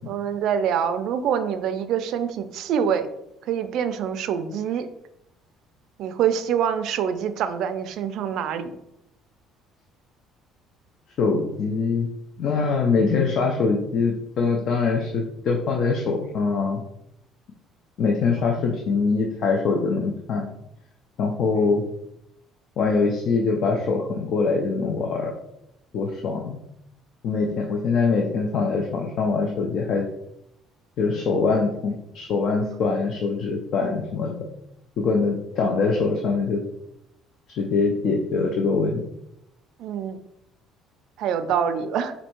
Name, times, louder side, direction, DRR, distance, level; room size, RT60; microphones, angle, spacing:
voice 1, 0.1-3.1 3.4-4.9 6.0-8.7 18.3-18.7 39.8-40.2 41.2-42.1, right 8 dB, 55° right, 10 dB, 0.4 m, -25 dB
voice 2, 11.2-12.1 12.4-16.8 18.0-20.5 21.2-21.8 22.8-25.3 25.9-26.6 27.2-30.1 31.0-34.3 35.0-36.6 37.5-39.0, left 4 dB, 45° left, 2 dB, 0.5 m, -23 dB
4.3 x 2.6 x 4.4 m, 0.80 s
cardioid pair, 170°, 0 cm